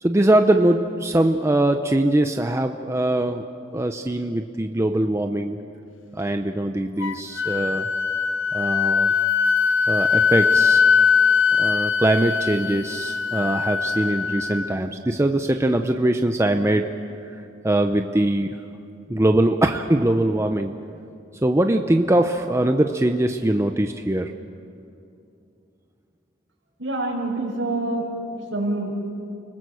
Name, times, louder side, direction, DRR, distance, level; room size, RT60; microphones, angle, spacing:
voice 1, 0.0-5.6 6.1-7.9 8.5-9.1 9.9-10.8 11.5-17.1 17.6-18.6 19.1-20.8 21.4-24.3, right 1 dB, 15° right, 6 dB, 0.6 m, -22 dB
Wind instrument woodwind instrument, 7.0-14.8, left 6 dB, 85° left, 0.7 m, -21 dB
voice 2, 26.8-28.9, right 2 dB, 75° right, -2 dB, 6.0 m, -26 dB
30.0 x 20.5 x 6.3 m, 2.6 s
head